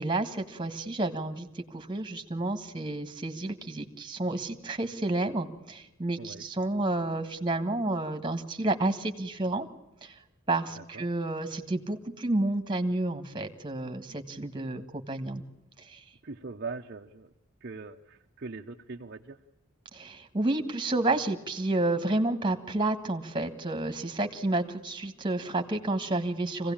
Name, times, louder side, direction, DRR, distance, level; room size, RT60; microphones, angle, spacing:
voice 1, 0.0-9.7 10.0-10.2 10.5-15.4 15.9-16.0 19.9-26.7, right 2 dB, 20° right, 6 dB, 1.7 m, -30 dB
voice 2, 10.7-11.1 14.7-14.9 16.2-17.3 17.6-19.4, right 4 dB, 45° right, 3 dB, 0.8 m, -41 dB
25.0 x 17.0 x 8.7 m, 0.93 s
head